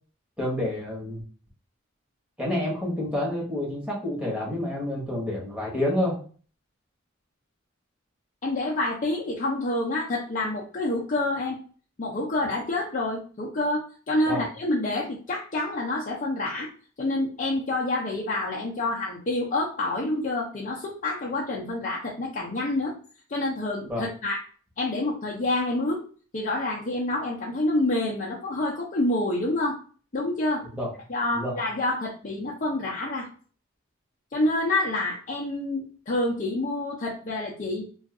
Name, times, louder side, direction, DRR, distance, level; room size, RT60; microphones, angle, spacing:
voice 1, 0.4-1.2 2.4-6.2 14.3-14.4 23.9-24.0 30.8-30.9 31.3-31.6, left 1 dB, 5° right, -4 dB, 1.1 m, -28 dB
voice 2, 8.4-11.6 12.0-16.7 17.0-22.9 23.3-24.4 24.8-26.0 26.3-29.8 30.1-30.7 31.1-33.3 34.3-37.9, left 2 dB, 40° left, -5 dB, 0.6 m, -27 dB
2.5 x 2.3 x 3.6 m, 0.41 s
head